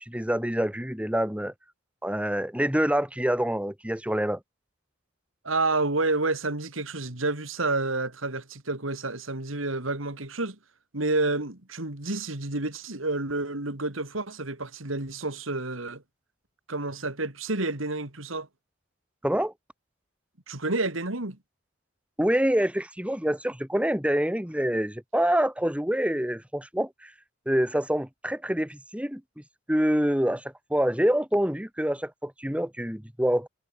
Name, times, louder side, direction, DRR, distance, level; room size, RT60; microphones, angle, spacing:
voice 1, 0.1-1.5 2.0-4.4 19.2-19.5 22.2-27.1 27.5-29.2 29.7-30.4 30.7-33.5, equal, 5° right, 2.4 m, -26 dB
voice 2, 5.4-10.6 10.9-16.0 16.7-18.5 20.5-21.4, right 2 dB, 80° right, 3.4 m, -29 dB
head